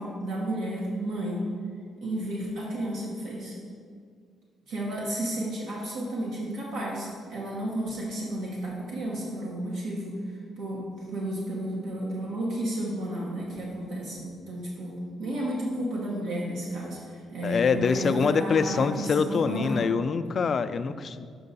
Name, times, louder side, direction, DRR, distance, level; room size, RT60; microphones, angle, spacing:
voice 1, 0.0-1.4 2.0-3.5 4.7-19.9, right 1 dB, 85° right, -4 dB, 1.0 m, -32 dB
voice 2, 17.4-21.3, left 5 dB, 50° left, 11 dB, 0.3 m, -25 dB
6.4 x 5.2 x 4.0 m, 2.1 s
cardioid pair, 90°, 0 cm